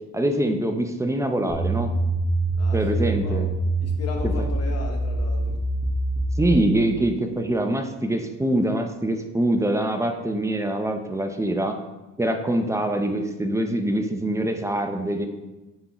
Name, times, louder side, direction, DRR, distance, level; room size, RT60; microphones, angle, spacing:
voice 1, 0.1-1.9 2.7-3.5 4.2-4.3 6.4-11.8 12.2-15.3, right 1 dB, 10° right, 5 dB, 0.6 m, -24 dB
sound 1, 1.5-6.8, right 1 dB, 35° left, 1.7 m, -25 dB
voice 2, 2.6-3.4 3.8-5.6 12.6-12.8, left 2 dB, 55° left, 2 dB, 1.2 m, -36 dB
9.5 x 3.8 x 3.0 m, 1.1 s
cardioid pair, 90°, 30 cm